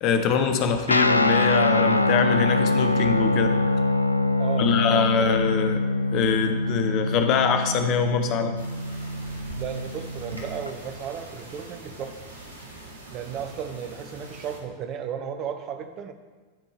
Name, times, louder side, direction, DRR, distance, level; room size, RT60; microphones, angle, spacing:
voice 1, 0.0-3.5 4.6-5.8 6.1-8.6, left 6 dB, 40° left, 7 dB, 0.7 m, -24 dB
Guitar, 0.9-10.7, left 2 dB, 85° left, 0.3 m, -24 dB
voice 2, 4.4-5.3 9.6-12.2 13.1-16.1, right 8 dB, 35° right, 7 dB, 0.8 m, -34 dB
sound 1, 8.6-14.6, right 1 dB, 80° right, 1.2 m, -42 dB
11.5 x 4.3 x 3.4 m, 1.3 s
figure-of-eight pair, 90°, 0 cm